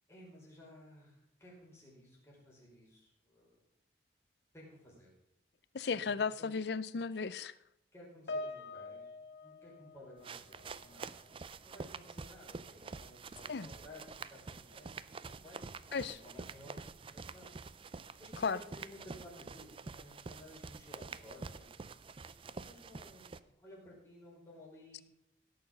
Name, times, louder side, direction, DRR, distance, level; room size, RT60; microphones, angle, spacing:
voice 1, 0.1-3.6 4.5-5.1 5.9-6.0 6.4-6.6 7.9-9.1 9.4-11.3 11.6-15.0 15.3-17.5 18.2-21.7 22.6-25.0, left 1 dB, 15° left, -5 dB, 5.1 m, -56 dB
voice 2, 5.7-7.5 13.5-13.7 15.9-16.2 18.4-18.6, left 5 dB, 65° left, 16 dB, 0.5 m, -35 dB
Piano, 8.3-10.9 11.2-11.5 12.3-12.4, left 2 dB, 90° left, 0.9 m, -45 dB
sound 1, 10.2-23.4, right 4 dB, 30° right, 0.4 m, -47 dB
16.5 x 6.9 x 5.4 m, 0.79 s
head